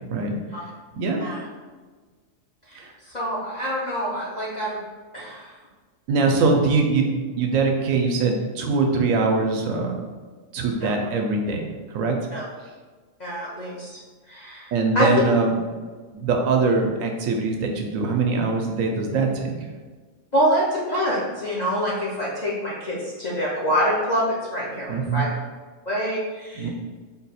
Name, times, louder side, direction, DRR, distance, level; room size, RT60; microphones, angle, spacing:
voice 1, 2.7-4.8 5.1-5.5 10.8-10.9 12.3-12.5 13.2-14.0 14.3-15.1 20.3-25.4 25.9-26.7, equal, 45° left, -6 dB, 0.6 m, -26 dB
voice 2, 6.1-10.0 10.5-12.2 14.7-15.6 16.1-19.7 24.9-25.2 26.6-26.7, right 4 dB, 75° right, 3 dB, 1.0 m, -22 dB
3.8 x 2.3 x 4.1 m, 1.4 s
omnidirectional pair, 1.4 m